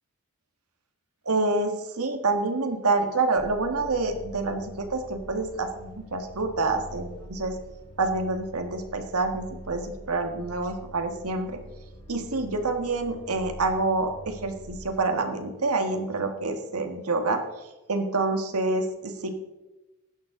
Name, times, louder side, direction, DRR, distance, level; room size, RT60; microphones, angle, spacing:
voice 1, 1.2-7.6 8.0-11.6 12.1-19.4, right 3 dB, 80° right, 6 dB, 1.6 m, -27 dB
sound 1, 3.4-15.1, equal, 25° left, 2.5 m, -45 dB
16.0 x 11.0 x 3.8 m, 1.1 s
head